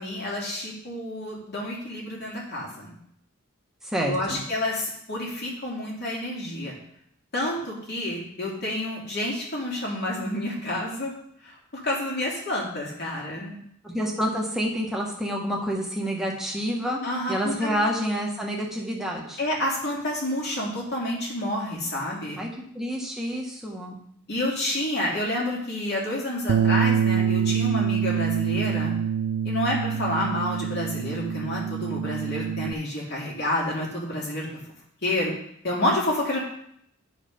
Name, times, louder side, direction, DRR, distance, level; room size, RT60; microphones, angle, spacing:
voice 1, 0.0-3.0 4.0-6.7 7.3-11.1 11.4-11.6 11.8-13.6 17.0-17.8 19.4-22.4 24.3-28.9 29.4-34.5 35.0-35.3 35.6-36.4, left 1 dB, 50° left, -3 dB, 2.6 m, -29 dB
voice 2, 3.8-4.4 13.8-17.0 17.3-19.4 22.4-22.5 22.7-24.0, equal, ahead, -2 dB, 1.4 m, -28 dB
Bass guitar, 26.5-32.7, right 8 dB, 85° right, 0.3 m, -25 dB
10.0 x 4.9 x 5.2 m, 0.71 s
head